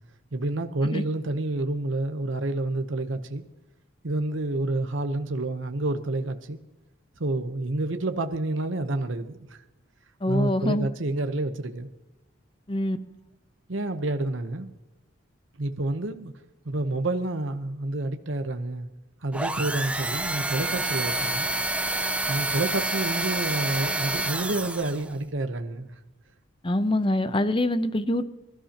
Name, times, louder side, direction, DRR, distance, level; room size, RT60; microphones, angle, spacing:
voice 1, 0.3-3.4 4.0-6.6 7.2-9.6 10.3-11.9 13.7-14.7 15.6-16.3 16.6-18.9 19.2-21.5 22.3-26.0, right 2 dB, 70° right, 1.0 m, -29 dB
voice 2, 10.2-10.9 12.7-13.0 26.6-28.2, left 1 dB, 25° left, 0.7 m, -25 dB
sound 1, 19.3-25.1, right 2 dB, 5° right, 0.5 m, -28 dB
26.5 x 13.0 x 2.9 m
head